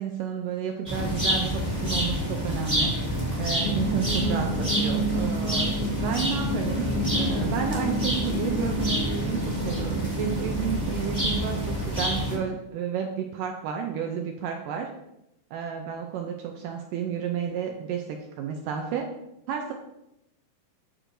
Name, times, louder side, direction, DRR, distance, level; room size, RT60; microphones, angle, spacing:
voice 1, 0.0-2.9 3.2-6.9 7.1-14.9 15.5-19.1 19.5-19.7, right 7 dB, 80° right, 3 dB, 2.0 m, -31 dB
sound 1, 0.9-12.4, equal, 5° right, 1.3 m, -28 dB
sound 2, 3.6-11.1, right 1 dB, 75° left, 2.9 m, -31 dB
13.5 x 4.5 x 2.6 m, 0.88 s
omnidirectional pair, 4.3 m